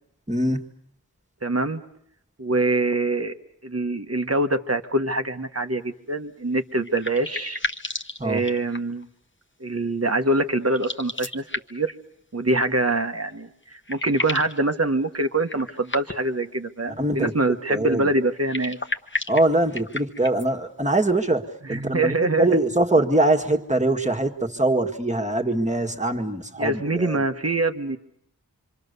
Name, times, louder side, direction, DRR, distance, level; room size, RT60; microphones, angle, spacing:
voice 1, 0.3-0.6 8.2-8.4 17.0-18.1 19.3-27.2, right 2 dB, 20° right, 2 dB, 1.9 m, -23 dB
voice 2, 1.4-1.8 2.4-3.3 3.6-7.6 8.2-9.1 9.6-11.4 11.7-11.9 12.3-18.8 21.7-22.6 26.6-28.0, right 2 dB, 40° right, 7 dB, 1.3 m, -24 dB
sound 1, 6.5-9.0 10.7-11.9 13.3-13.4 13.6-14.6 15.4-16.4 18.3-20.5, left 2 dB, 30° left, 1.3 m, -33 dB
26.5 x 25.5 x 6.8 m, 0.71 s
wide cardioid pair, 45°, 37 cm